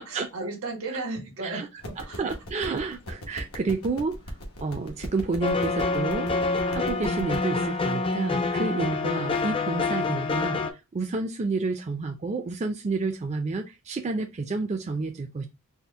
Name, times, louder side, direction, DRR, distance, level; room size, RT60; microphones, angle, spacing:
voice 1, 0.0-2.2, right 3 dB, 80° right, 1.4 m, -35 dB
sound 1, 1.8-7.4, equal, 85° left, 1.1 m, -40 dB
voice 2, 2.0-4.2 4.6-6.3 6.7-10.6 10.9-15.5, right 3 dB, 30° right, 0.4 m, -30 dB
sound 2, 5.4-10.7, left 3 dB, 25° left, 0.4 m, -27 dB
4.2 x 2.1 x 3.5 m
head